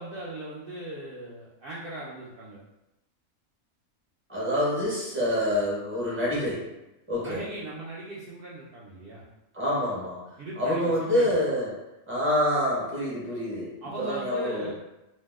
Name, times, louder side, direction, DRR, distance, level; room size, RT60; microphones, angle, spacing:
voice 1, 0.0-2.6 7.2-9.2 10.4-11.3 13.8-14.7, right 2 dB, 75° right, -6 dB, 0.5 m, -38 dB
voice 2, 4.3-6.7 7.1-7.4 9.5-10.2 10.6-11.7 12.1-14.7, left 1 dB, 10° right, -6 dB, 0.7 m, -27 dB
2.7 x 2.1 x 3.3 m, 0.95 s
omnidirectional pair, 1.5 m